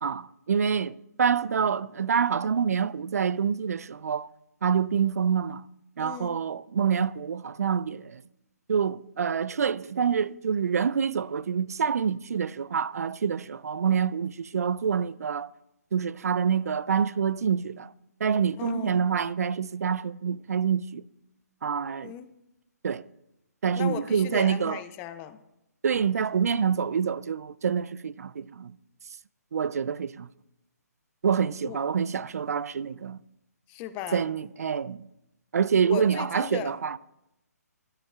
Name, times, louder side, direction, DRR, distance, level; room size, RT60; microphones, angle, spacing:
voice 1, 0.0-4.3 4.6-5.6 6.0-8.2 8.7-15.5 15.9-17.9 18.2-21.0 21.6-22.1 22.8-23.0 23.6-24.8 25.8-28.8 29.5-30.3 31.2-33.2 34.1-35.1 35.5-37.0, right 7 dB, 65° right, 0.4 m, -26 dB
voice 2, 6.0-6.4 18.6-19.1 22.0-22.3 23.8-25.4 31.6-31.8 33.7-34.3 35.8-36.7, left 11 dB, 20° left, 0.4 m, -36 dB
14.0 x 13.0 x 2.3 m
figure-of-eight pair, 140°, 9 cm